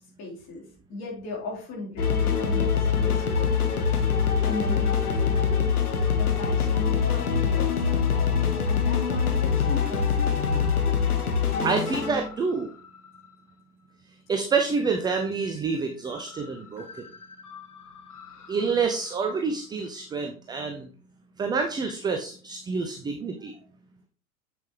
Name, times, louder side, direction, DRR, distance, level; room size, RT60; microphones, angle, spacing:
voice 1, 0.2-4.0 4.4-5.7 6.1-8.1 8.6-10.6, left 2 dB, 35° left, -5 dB, 4.1 m, -38 dB
sound 1, 2.0-13.2 14.8-15.4 15.7-15.8 16.1-18.9, left 6 dB, 80° left, 1.3 m, -25 dB
voice 2, 11.6-12.7 14.3-16.9 18.5-20.9 21.4-23.5, right 5 dB, 10° right, 5 dB, 0.4 m, -27 dB
7.5 x 7.4 x 3.2 m, 0.42 s
figure-of-eight pair, 90°, 44 cm